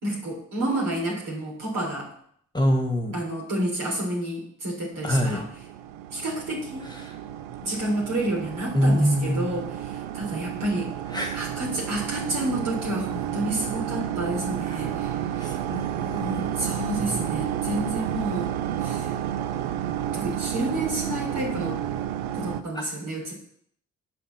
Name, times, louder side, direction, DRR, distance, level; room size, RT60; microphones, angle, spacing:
voice 1, 0.0-2.1 3.1-5.4 6.1-6.9 7.6-10.9 11.3-15.5 16.2-18.5 18.8-19.1 20.1-21.8 22.3-23.3, right 1 dB, 60° right, -2 dB, 3.7 m, -30 dB
voice 2, 2.5-3.2 5.0-5.5 6.8-7.2 8.7-9.5 11.1-11.4 14.7-14.8 15.3-16.6 17.0-17.3 22.7-22.9, equal, 10° left, 3 dB, 1.8 m, -26 dB
sound 1, 5.1-22.6, right 11 dB, 85° right, 0.5 m, -31 dB
7.7 x 5.7 x 6.0 m, 0.64 s
hypercardioid pair, 45°, 36 cm